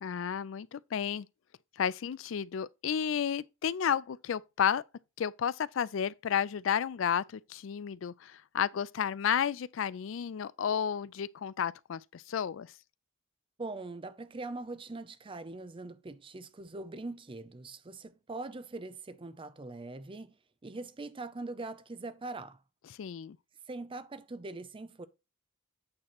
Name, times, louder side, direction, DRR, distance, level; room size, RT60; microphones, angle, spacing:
voice 1, 0.0-1.3 1.8-4.8 5.2-12.7 22.9-23.4, left 8 dB, 70° left, 0.4 m, -32 dB
voice 2, 13.6-20.4 20.6-22.6 23.7-25.1, right 2 dB, 25° right, 0.5 m, -42 dB
8.7 x 3.1 x 5.9 m
head